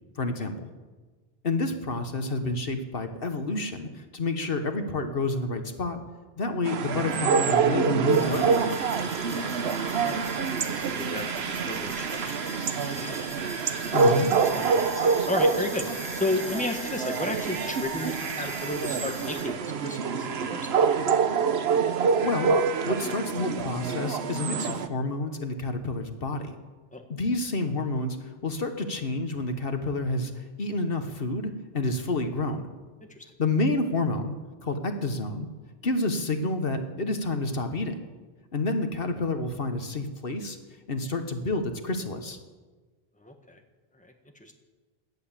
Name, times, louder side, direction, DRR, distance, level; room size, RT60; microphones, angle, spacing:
voice 1, 0.2-0.7 1.4-6.0 6.4-8.5 13.9-14.3 22.2-22.5 22.9-26.6 27.1-32.7 33.4-34.3 34.6-35.5 35.8-37.9 38.5-40.6 40.9-42.4, left 2 dB, 65° left, 7 dB, 1.4 m, -29 dB
sound 1, 6.6-24.9, right 5 dB, 85° right, 1.1 m, -26 dB
sound 2, 8.1-19.4, equal, 30° left, 5.3 m, -41 dB
voice 2, 9.9-10.5 10.7-13.3 14.2-15.9 16.1-20.7 26.9-27.0 33.1-33.2 43.2-43.6 44.0-44.1 44.4-44.5, left 2 dB, 5° left, 4 dB, 1.6 m, -34 dB
17.5 x 11.0 x 7.4 m, 1.3 s
omnidirectional pair, 1.0 m